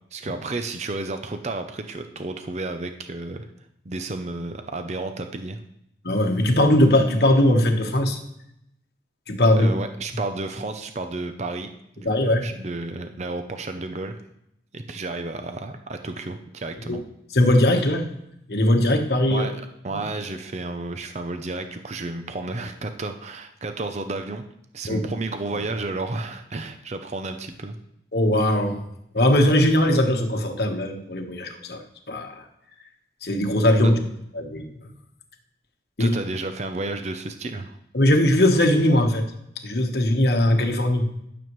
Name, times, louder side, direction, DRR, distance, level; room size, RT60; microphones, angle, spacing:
voice 1, 0.1-3.5 3.8-5.6 9.6-11.7 12.0-14.2 14.7-17.0 19.3-24.4 24.7-27.8 36.0-37.8, right 2 dB, 40° right, 7 dB, 0.6 m, -32 dB
voice 2, 6.0-8.2 9.3-9.7 12.0-12.4 16.9-17.0 17.3-18.1 18.5-19.5 19.9-20.0 24.9-25.0 28.1-28.8 29.1-32.5 33.2-34.0 34.3-34.9 36.0-36.1 37.9-39.3 39.6-41.1, left 1 dB, 60° left, 3 dB, 1.3 m, -20 dB
15.0 x 7.0 x 3.1 m, 0.78 s
head